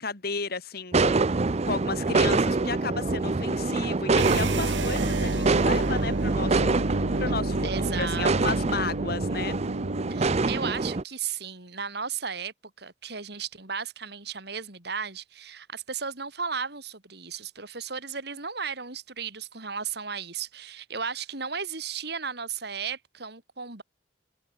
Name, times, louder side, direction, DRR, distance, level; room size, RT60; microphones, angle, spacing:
voice 1, 0.0-6.8 7.2-9.6, left 4 dB, 55° left, 2.7 m, -33 dB
sound 1, 0.9-11.0, right 3 dB, 35° right, 0.6 m, -26 dB
sound 2, 4.1-10.3, right 2 dB, 80° right, 1.7 m, -30 dB
voice 2, 7.6-8.3 10.1-23.8, right 6 dB, 60° right, 4.3 m, -35 dB
head